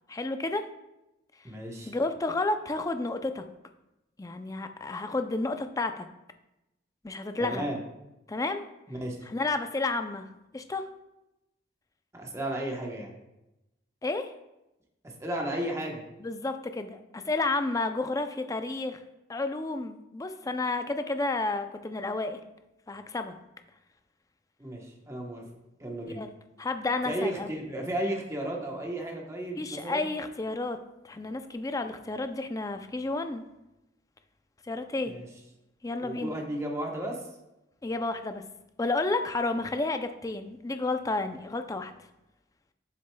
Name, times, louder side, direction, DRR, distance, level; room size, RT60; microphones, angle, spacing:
voice 1, 0.1-0.6 1.9-3.4 4.2-6.1 7.0-7.7 8.3-8.6 9.3-10.3 10.5-10.9 14.0-14.3 16.2-19.0 19.3-22.4 22.9-23.3 26.1-26.3 26.6-27.5 29.6-30.8 31.0-33.4 34.6-35.1 35.8-36.3 37.8-38.4 38.8-41.9, left 2 dB, 20° left, 8 dB, 0.4 m, -31 dB
voice 2, 1.4-1.9 7.4-7.8 8.9-9.2 12.1-13.1 15.0-16.0 24.6-25.4 25.8-26.2 27.0-30.1 35.0-35.3 36.0-37.2, right 1 dB, 15° right, 0 dB, 1.0 m, -34 dB
7.7 x 6.4 x 2.2 m, 0.93 s
head